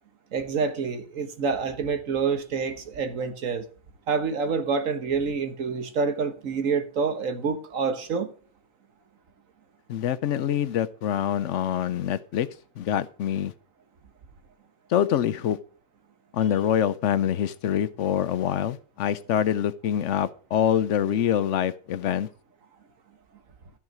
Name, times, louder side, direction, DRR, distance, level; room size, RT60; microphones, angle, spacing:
voice 1, 0.3-3.7 4.1-8.3, right 5 dB, 75° right, 1.5 m, -27 dB
voice 2, 9.9-12.5 12.8-13.5 14.9-15.6 16.3-22.3, left 10 dB, 65° left, 1.0 m, -25 dB
13.5 x 5.6 x 6.2 m
omnidirectional pair, 1.4 m